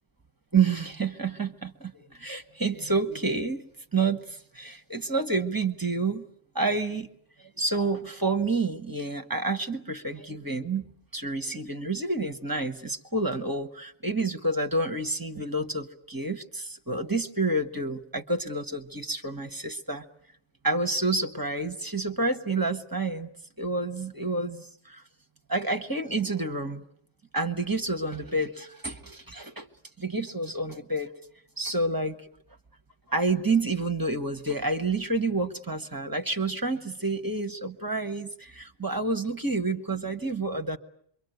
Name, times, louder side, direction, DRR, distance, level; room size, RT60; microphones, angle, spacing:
voice 1, 0.5-3.6 3.9-6.3 6.5-7.1 7.4-20.0 20.6-23.3 23.6-25.0 25.5-26.8 27.3-29.7 30.0-31.1 31.6-32.2 33.1-40.8, right 3 dB, 15° right, 7 dB, 1.3 m, -29 dB
27.0 x 24.0 x 8.0 m, 0.64 s
omnidirectional pair, 1.3 m